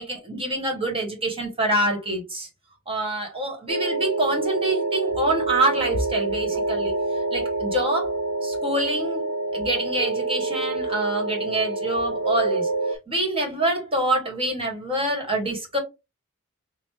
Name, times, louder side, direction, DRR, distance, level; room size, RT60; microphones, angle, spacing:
voice 1, 0.0-2.5 2.9-6.9 7.3-8.1 8.4-15.8, right 1 dB, 25° right, 1.3 m, -26 dB
sound 1, 3.7-12.9, right 2 dB, 80° right, 0.5 m, -27 dB
5.0 x 2.0 x 3.2 m
head